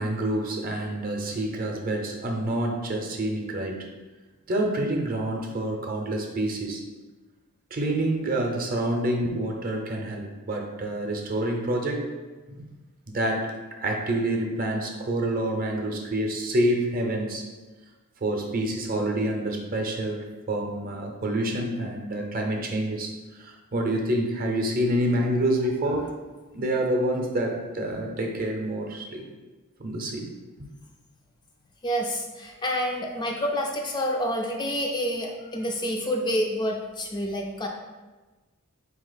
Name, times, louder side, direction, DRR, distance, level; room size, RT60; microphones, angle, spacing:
voice 1, 0.0-3.9 4.5-6.8 7.7-12.1 12.5-12.7 13.1-13.5 13.8-17.4 18.2-26.2 26.5-29.2 29.8-30.3, right 1 dB, 40° right, 2 dB, 0.6 m, -27 dB
voice 2, 31.8-37.7, equal, 20° left, 1 dB, 0.3 m, -28 dB
4.3 x 2.9 x 4.0 m, 1.2 s
head